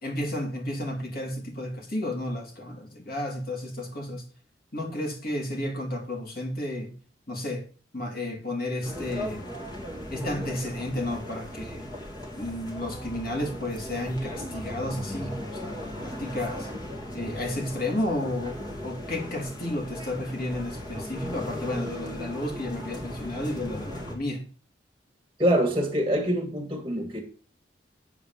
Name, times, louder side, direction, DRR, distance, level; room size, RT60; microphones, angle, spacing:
voice 1, 0.0-4.2 4.7-6.9 7.3-7.7 7.9-9.5 10.1-11.9 12.4-16.7 17.1-24.4, left 1 dB, 55° left, 2 dB, 2.8 m, -32 dB
sound 1, 8.8-24.1, left 1 dB, 25° left, 2.3 m, -37 dB
voice 2, 25.4-27.2, equal, 20° right, 1 dB, 1.8 m, -25 dB
8.3 x 4.9 x 7.2 m, 0.38 s
head